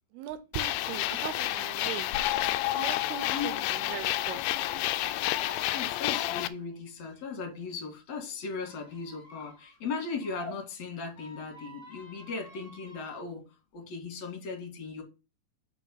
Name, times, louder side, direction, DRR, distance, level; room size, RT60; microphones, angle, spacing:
voice 1, 0.1-2.1 2.7-4.4, right 11 dB, 85° right, 2.3 m, -39 dB
sound 1, 0.5-6.5, left 14 dB, 85° left, 2.3 m, -30 dB
voice 2, 5.7-13.5 13.7-15.0, left 5 dB, 50° left, 2.5 m, -37 dB
Squeak, 8.6-10.5 11.1-13.2, equal, 25° left, 1.4 m, -50 dB
6.1 x 4.2 x 5.4 m
omnidirectional pair, 5.0 m